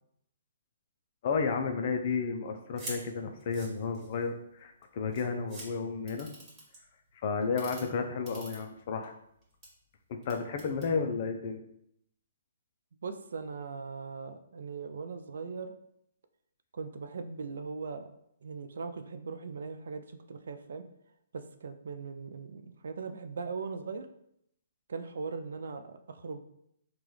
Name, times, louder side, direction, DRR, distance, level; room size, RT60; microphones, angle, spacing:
voice 1, 1.2-6.3 7.2-9.1 10.1-11.6, left 5 dB, 50° left, 5 dB, 0.4 m, -32 dB
sound 1, 2.8-3.0 3.4-4.3 4.8-4.9 5.1-5.7 6.1-6.8 7.4-7.8 8.3-9.0 9.4-9.7 10.2-10.9, right 2 dB, 20° right, 1.3 m, -44 dB
voice 2, 13.0-15.7 16.7-18.1 18.4-20.8 21.3-24.1 24.9-26.4, right 4 dB, 75° right, 9 dB, 0.3 m, -39 dB
3.9 x 2.3 x 3.1 m, 0.75 s
hypercardioid pair, 140°, 0 cm